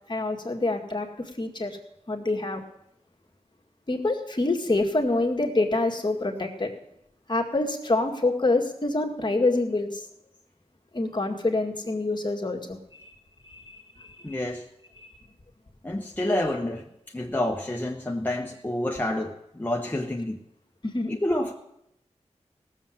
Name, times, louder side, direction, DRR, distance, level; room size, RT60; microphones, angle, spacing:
voice 1, 0.1-1.8 2.1-2.6 3.9-6.7 7.3-10.0 10.9-13.1 13.4-14.4 15.0-15.1 20.8-21.1, left 2 dB, 40° left, 2 dB, 2.0 m, -26 dB
voice 2, 14.2-14.7 15.8-16.9 17.1-20.4 21.1-21.5, left 1 dB, 15° left, 1 dB, 1.1 m, -28 dB
17.0 x 7.1 x 7.4 m, 0.80 s
wide cardioid pair, 70°, 12 cm